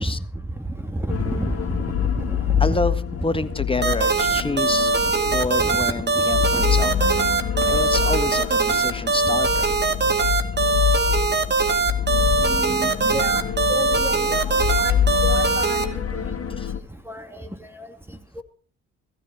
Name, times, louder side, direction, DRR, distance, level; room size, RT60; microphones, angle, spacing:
voice 1, 0.0-2.8 3.2-3.5 5.3-6.6 7.7-10.1 12.4-16.3 17.0-18.4, right 1 dB, 5° right, 5 dB, 2.5 m, -33 dB
sound 1, 1.1-16.8, left 8 dB, 45° left, 2.3 m, -26 dB
voice 2, 2.6-3.0 3.2-7.2 7.7-9.7 16.6-16.7, left 2 dB, 15° left, 12 dB, 1.5 m, -28 dB
sound 2, 3.8-15.8, right 3 dB, 30° right, 2.2 m, -21 dB
15.5 x 13.5 x 5.0 m, 0.40 s
hypercardioid pair, 50°, 34 cm